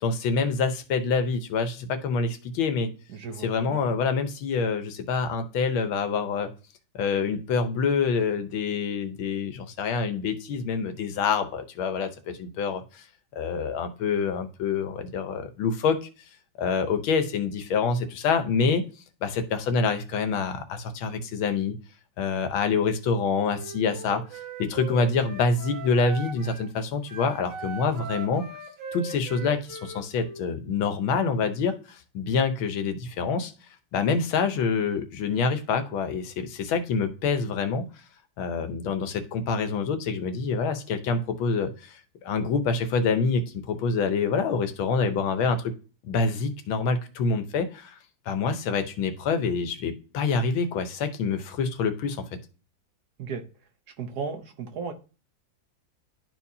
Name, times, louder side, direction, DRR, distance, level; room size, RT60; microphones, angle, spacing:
voice 1, 0.0-2.9 3.4-6.5 7.0-13.0 13.3-16.0 16.6-18.9 19.2-21.8 22.2-28.5 28.9-33.5 33.9-37.9 38.4-45.7 46.0-48.0 48.3-52.4, left 5 dB, 90° left, 8 dB, 1.7 m, -26 dB
voice 2, 3.1-3.8 53.2-53.4 54.0-54.9, right 5 dB, 60° right, 6 dB, 1.3 m, -35 dB
Wind instrument woodwind instrument, 23.4-26.7 27.0-30.4, right 5 dB, 75° right, 2.2 m, -40 dB
11.0 x 4.6 x 2.8 m, 0.34 s
omnidirectional pair, 2.1 m